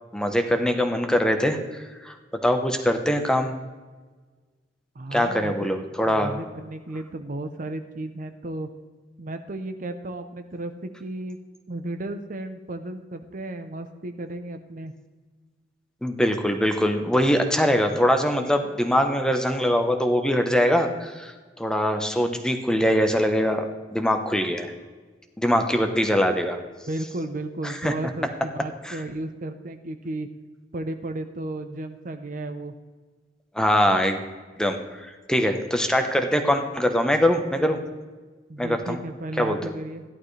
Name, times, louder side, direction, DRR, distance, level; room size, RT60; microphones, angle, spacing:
voice 1, 0.1-2.2 2.4-3.5 5.1-6.4 16.0-24.7 25.4-26.6 27.6-27.9 28.8-29.0 33.5-34.2 34.6-37.8 38.6-39.0 39.4-39.6, equal, 5° left, 5 dB, 0.9 m, -23 dB
voice 2, 4.9-5.7 6.1-8.7 9.2-11.4 11.7-14.9 26.9-30.3 30.7-32.8 38.5-40.0, right 2 dB, 45° right, 8 dB, 0.7 m, -34 dB
14.5 x 11.5 x 3.3 m, 1.4 s
head